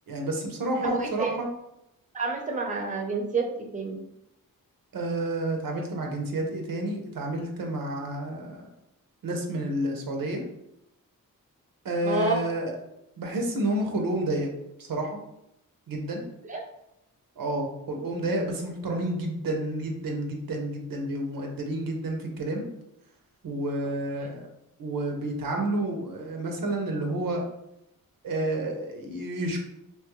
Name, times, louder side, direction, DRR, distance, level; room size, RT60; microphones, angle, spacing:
voice 1, 0.1-1.5 4.9-8.7 9.2-10.4 11.8-12.7 13.2-14.5 14.8-15.2 15.9-16.2 17.4-22.6 23.4-24.5 24.8-27.4 28.2-29.6, right 1 dB, 75° right, 2 dB, 0.7 m, -30 dB
voice 2, 0.8-1.3 2.1-4.0 12.0-12.3 16.5-16.6, right 3 dB, 20° right, 1 dB, 0.7 m, -29 dB
3.0 x 2.3 x 3.0 m, 0.82 s
cardioid pair, 55°, 35 cm